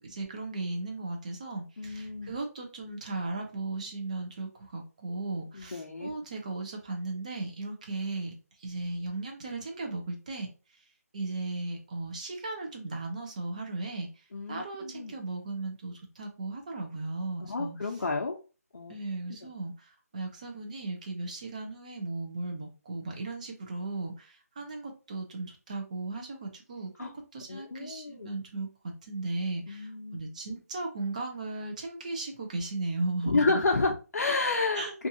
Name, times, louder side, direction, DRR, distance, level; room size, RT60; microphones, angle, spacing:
voice 1, 0.0-10.5 11.1-18.0 18.9-28.7 29.0-33.6 34.8-34.9, right 2 dB, 25° right, 3 dB, 0.5 m, -36 dB
voice 2, 1.8-2.3 5.5-6.1 14.3-15.2 17.5-18.4 18.7-18.9 27.0-27.1 27.5-28.3 29.7-30.2 33.3-35.1, left 3 dB, 75° left, 0 dB, 0.6 m, -30 dB
2.6 x 2.3 x 2.7 m, 0.33 s
hypercardioid pair, 170°, 9 cm